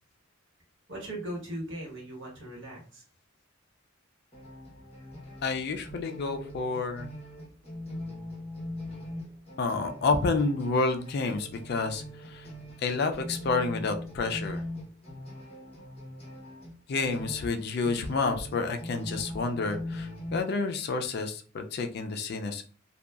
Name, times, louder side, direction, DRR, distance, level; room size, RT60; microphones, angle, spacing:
voice 1, 0.9-3.0, right 1 dB, 65° right, -2 dB, 1.2 m, -38 dB
sound 1, 4.3-20.4, left 1 dB, 30° left, 1.0 m, -41 dB
voice 2, 5.4-7.1 9.6-12.5 12.8-14.6 16.9-22.6, left 3 dB, 55° left, 6 dB, 0.4 m, -29 dB
2.7 x 2.2 x 2.3 m, 0.39 s
head